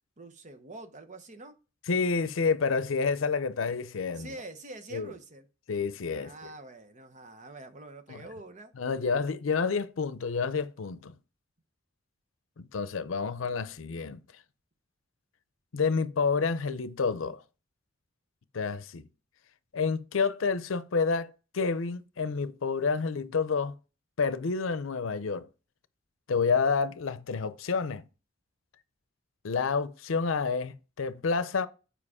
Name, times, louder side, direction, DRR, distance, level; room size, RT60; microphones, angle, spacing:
voice 1, 0.2-1.6 4.1-5.5 6.1-8.7, right 2 dB, 40° right, 0.9 m, -45 dB
voice 2, 1.9-4.3 4.9-5.1 5.7-6.3 8.1-8.2 8.8-11.1 12.6-14.2 15.7-17.4 18.5-19.0 19.7-23.7 24.2-25.5 26.3-28.0 29.4-31.7, left 5 dB, 90° left, 0.6 m, -29 dB
7.5 x 5.0 x 4.9 m
head